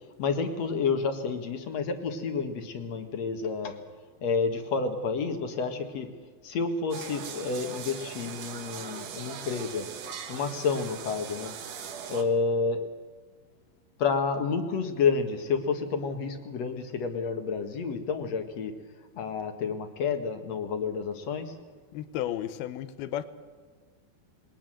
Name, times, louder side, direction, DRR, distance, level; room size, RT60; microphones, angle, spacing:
voice 1, 0.2-3.8 4.2-6.1 6.4-9.9 10.3-11.5 12.1-12.9 14.0-18.7 19.2-21.5, left 5 dB, 55° left, 2.4 m, -29 dB
sound 1, 6.9-12.2, right 7 dB, 55° right, 2.2 m, -40 dB
voice 2, 21.9-23.3, left 12 dB, 85° left, 2.9 m, -33 dB
21.0 x 19.5 x 7.6 m
omnidirectional pair, 4.3 m